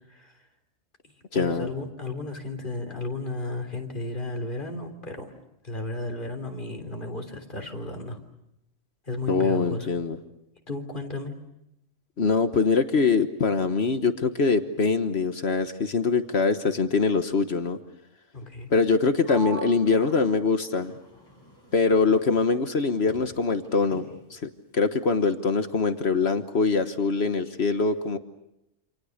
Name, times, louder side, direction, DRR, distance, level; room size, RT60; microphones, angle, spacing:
voice 1, 0.1-0.4 1.3-5.3 5.6-8.2 9.1-9.9 10.7-11.3 18.3-18.7, left 2 dB, 40° left, 4 dB, 3.6 m, -34 dB
voice 2, 1.3-1.7 9.3-10.2 12.2-17.8 18.7-20.9 21.7-24.4 24.7-28.2, left 4 dB, 60° left, 9 dB, 1.5 m, -23 dB
Sliding door, 19.2-22.8 23.1-24.4, right 3 dB, 20° left, 7.9 m, -44 dB
28.5 x 27.5 x 6.5 m, 0.85 s
omnidirectional pair, 1.3 m